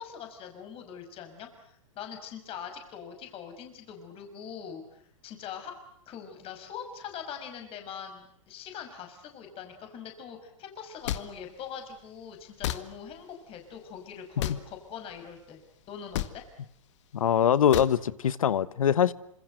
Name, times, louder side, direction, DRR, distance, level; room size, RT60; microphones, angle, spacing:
voice 1, 0.0-5.7 6.1-15.6 15.9-16.4, left 7 dB, 35° left, 5.8 m, -42 dB
sound 1, 11.1-11.2 12.6-12.8 14.4-14.6 16.1-16.3 17.7-17.9, left 13 dB, 60° left, 1.9 m, -30 dB
voice 2, 17.1-19.1, left 9 dB, 80° left, 1.2 m, -23 dB
28.0 x 26.5 x 7.9 m
hypercardioid pair, 115°, 18 cm